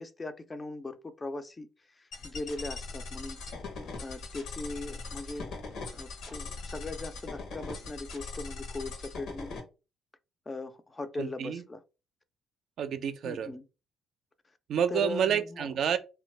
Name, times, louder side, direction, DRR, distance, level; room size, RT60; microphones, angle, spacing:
voice 1, 0.0-3.4 4.0-5.6 5.9-9.6 10.5-11.8 13.2-13.6 14.9-15.7, left 2 dB, 25° left, 0.4 m, -39 dB
sound 1, 2.1-9.6, left 3 dB, 70° left, 0.9 m, -40 dB
voice 2, 11.2-11.6 12.8-13.5 14.7-16.0, right 8 dB, 65° right, 0.4 m, -29 dB
2.7 x 2.2 x 3.2 m
cardioid pair, 85°, 0 cm